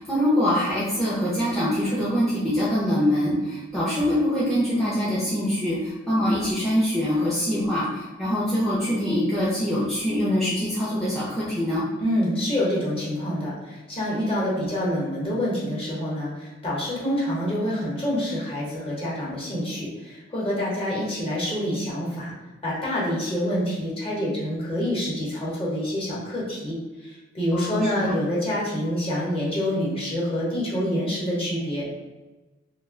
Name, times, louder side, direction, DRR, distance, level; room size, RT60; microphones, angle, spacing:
voice 1, 0.0-11.8 27.5-28.1, equal, ahead, -8 dB, 0.5 m, -24 dB
voice 2, 12.0-22.3 22.6-31.9, equal, 30° left, -6 dB, 0.9 m, -27 dB
2.4 x 2.1 x 3.6 m, 1.2 s
head